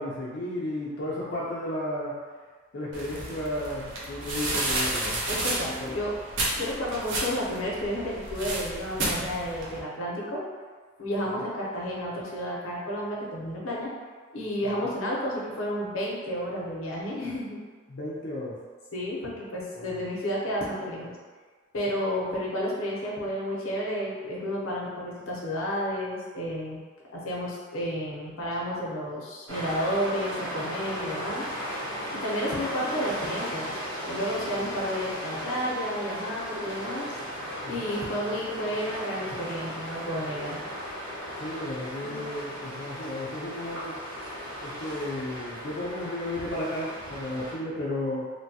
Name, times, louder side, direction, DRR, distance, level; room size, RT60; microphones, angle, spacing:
voice 1, 0.0-2.1 2.7-5.2 5.8-5.9 11.2-11.4 14.7-14.8 17.9-18.5 19.7-20.0 37.6-37.9 41.4-44.0 44.6-48.3, left 1 dB, 55° left, -6 dB, 0.5 m, -33 dB
sound 1, 2.9-9.8, right 2 dB, 60° right, 0.6 m, -32 dB
voice 2, 5.3-6.1 6.5-10.4 11.0-13.9 14.3-17.6 18.9-21.1 21.7-26.8 27.1-31.5 31.8-33.7 34.0-37.1 37.6-40.6, equal, 90° left, -4 dB, 0.7 m, -31 dB
sound 2, 29.5-47.5, equal, 80° right, 1.1 m, -36 dB
3.1 x 2.2 x 2.7 m, 1.5 s
head